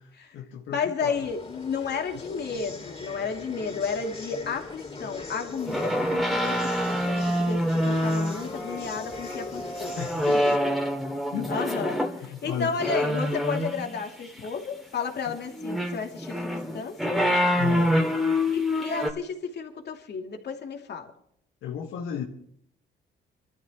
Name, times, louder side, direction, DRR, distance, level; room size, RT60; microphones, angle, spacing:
voice 1, 0.0-1.2 10.0-10.8 11.3-11.9 12.2-12.7 15.3-15.4 17.6-17.9 21.6-22.2, left 8 dB, 85° left, 1.7 m, -34 dB
voice 2, 0.7-10.0 10.5-10.7 11.5-17.2 18.5-21.1, left 5 dB, 55° left, 2.7 m, -32 dB
sound 1, 1.1-10.6, left 3 dB, 30° left, 4.6 m, -40 dB
sound 2, 5.7-12.2 12.8-14.0 15.5-19.1, equal, ahead, 2.4 m, -26 dB
26.0 x 13.5 x 3.0 m
cardioid pair, 90°, 20 cm